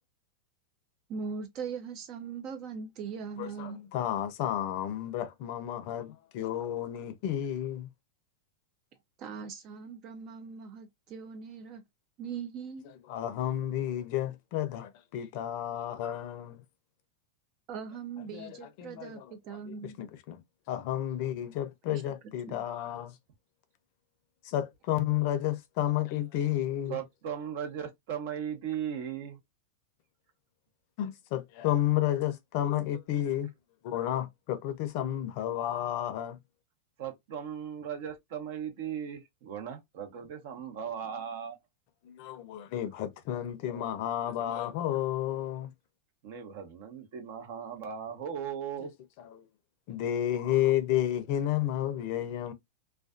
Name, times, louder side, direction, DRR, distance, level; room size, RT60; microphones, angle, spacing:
voice 1, 1.1-3.8 9.2-11.8 12.2-12.9 17.7-20.0 21.9-22.1 22.5-22.6, right 6 dB, 40° right, 0.4 m, -40 dB
voice 2, 3.4-7.9 13.1-16.6 18.3-19.3 19.7-20.4 20.7-23.1 24.4-27.0 31.0-33.5 33.8-36.4 42.0-45.7 49.3-49.4 49.9-52.5, left 12 dB, 55° left, 0.5 m, -31 dB
voice 3, 26.9-29.4 37.0-41.6 46.2-48.9, right 8 dB, 60° right, 0.9 m, -37 dB
2.4 x 2.3 x 2.4 m
supercardioid pair, 135°, 0 cm